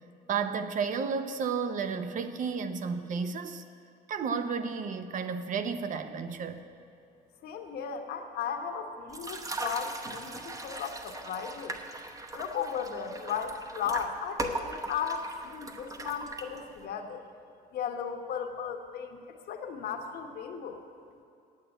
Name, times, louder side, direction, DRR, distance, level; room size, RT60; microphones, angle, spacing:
voice 1, 0.3-3.6 4.1-6.6, right 5 dB, 50° right, 9 dB, 0.8 m, -32 dB
voice 2, 7.4-11.8 12.3-17.2 17.7-19.2 19.5-20.8, left 7 dB, 70° left, 5 dB, 1.1 m, -35 dB
sound 1, 9.1-16.9, right 2 dB, 20° right, 0.8 m, -39 dB
8.6 x 8.1 x 9.0 m, 2.5 s
cardioid pair, 110°, 17 cm